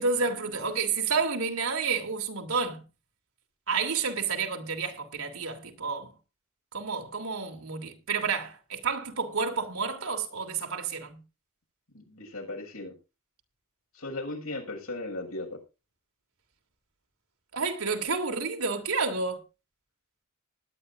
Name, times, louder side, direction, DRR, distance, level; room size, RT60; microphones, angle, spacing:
voice 1, 0.0-2.8 3.7-6.1 6.7-11.2 17.5-19.4, right 4 dB, 85° right, 2.9 m, -30 dB
voice 2, 11.9-12.9 13.9-15.5, left 2 dB, 85° left, 6.6 m, -37 dB
19.5 x 9.9 x 2.6 m
head